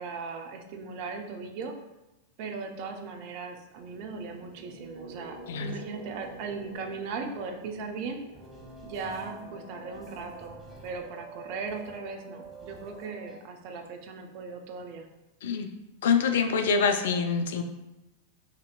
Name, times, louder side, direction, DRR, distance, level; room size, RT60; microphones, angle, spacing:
voice 1, 0.0-1.7 2.4-8.2 8.8-15.1, right 4 dB, 45° right, 4 dB, 0.6 m, -38 dB
sound 1, 3.8-11.9, right 2 dB, 60° right, 1.4 m, -49 dB
sound 2, 8.3-13.4, right 2 dB, 20° right, 1.1 m, -46 dB
voice 2, 16.0-17.6, left 5 dB, 60° left, 7 dB, 0.4 m, -25 dB
5.7 x 2.8 x 2.4 m, 0.98 s
figure-of-eight pair, 90°, 0 cm